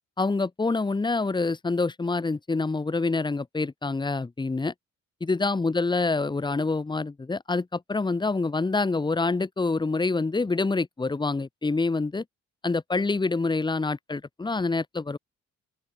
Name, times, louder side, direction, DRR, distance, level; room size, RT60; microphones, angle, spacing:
voice 1, 0.2-4.7 5.2-12.2 12.6-15.2, left 3 dB, 15° left, 0.9 m, -26 dB
open air
cardioid pair, 90°, 30 cm